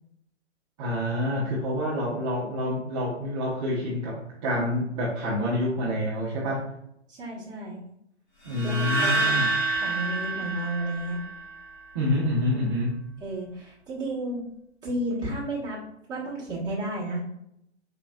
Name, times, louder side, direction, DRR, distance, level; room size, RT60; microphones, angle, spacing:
voice 1, 0.8-6.6 8.4-9.5 11.9-13.0, left 1 dB, 30° right, -6 dB, 0.8 m, -27 dB
voice 2, 7.1-7.8 8.6-9.3 9.8-11.2 13.2-14.4 14.8-15.8 16.1-17.2, right 1 dB, 10° right, -8 dB, 1.2 m, -32 dB
sound 1, 8.5-11.7, right 2 dB, 15° left, 0.4 m, -28 dB
4.2 x 3.0 x 2.3 m, 0.77 s
figure-of-eight pair, 130°, 35 cm